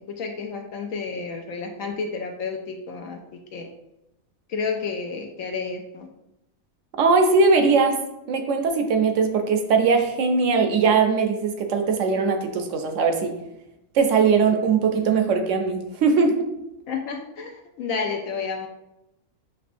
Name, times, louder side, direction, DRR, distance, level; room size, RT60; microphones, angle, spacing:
voice 1, 0.2-3.7 4.5-6.1 16.9-18.7, left 5 dB, 75° left, 3 dB, 0.9 m, -31 dB
voice 2, 7.0-8.0 8.3-13.3 13.9-16.5, right 4 dB, 65° right, 5 dB, 0.9 m, -20 dB
6.8 x 3.0 x 2.6 m, 0.88 s
omnidirectional pair, 1.4 m